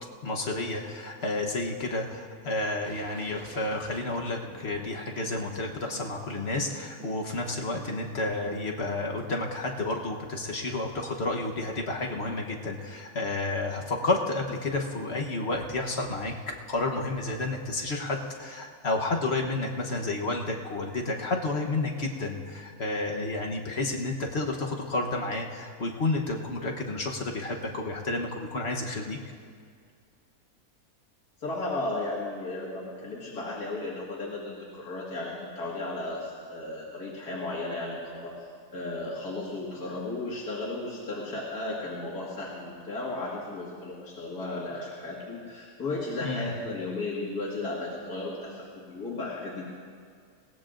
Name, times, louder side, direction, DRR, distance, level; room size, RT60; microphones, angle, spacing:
voice 1, 0.2-29.2 46.2-46.5, left 2 dB, 45° left, 1 dB, 1.2 m, -31 dB
sound 1, 2.9-9.4, right 7 dB, 60° right, 0.7 m, -48 dB
voice 2, 31.4-49.6, left 2 dB, 85° left, -6 dB, 2.4 m, -35 dB
21.5 x 18.0 x 2.5 m, 2.1 s
omnidirectional pair, 1.6 m